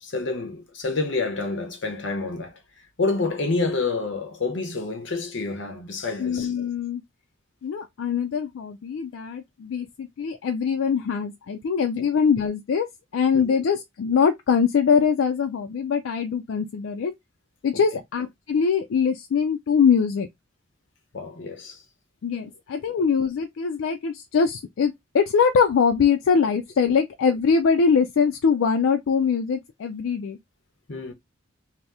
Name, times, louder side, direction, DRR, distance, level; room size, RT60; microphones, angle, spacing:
voice 1, 0.0-2.6 3.0-6.5 12.0-12.1 13.3-13.6 21.1-21.8 22.4-22.5 26.9-27.0 30.9-31.1, left 3 dB, 70° left, 0.8 m, -28 dB
voice 2, 6.2-7.0 7.6-17.1 17.6-20.3 22.2-30.4, left 6 dB, 85° left, 0.4 m, -23 dB
2.8 x 2.0 x 3.4 m
head